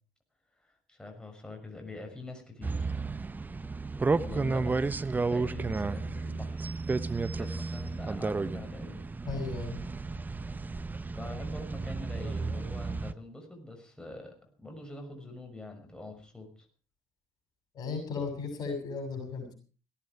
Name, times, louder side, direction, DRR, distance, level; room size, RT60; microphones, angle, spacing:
voice 1, 0.6-3.0 4.2-6.6 7.0-9.0 10.9-16.7, left 2 dB, 10° left, 3 dB, 6.2 m, -45 dB
sound 1, 2.6-13.1, right 3 dB, 20° right, 1.0 m, -32 dB
voice 2, 9.3-9.9 17.7-19.5, left 4 dB, 50° left, 6 dB, 7.1 m, -35 dB
17.0 x 16.0 x 4.8 m, 0.38 s
hypercardioid pair, 55°, 8 cm